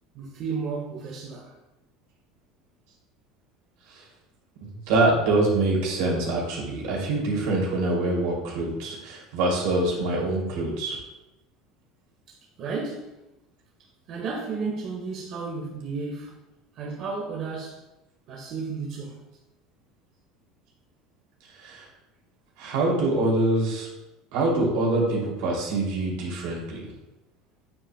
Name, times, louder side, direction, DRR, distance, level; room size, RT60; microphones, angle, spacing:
voice 1, 0.1-1.5 12.3-13.1 14.1-16.4 16.7-17.8 18.3-19.2, right 4 dB, 45° right, 1.4 m, -33 dB
voice 2, 4.9-11.0 21.6-21.9 22.6-23.9 24.3-26.9, right 2 dB, 75° right, 2.8 m, -25 dB
8.6 x 7.8 x 2.3 m
cardioid pair, 140°, 0 cm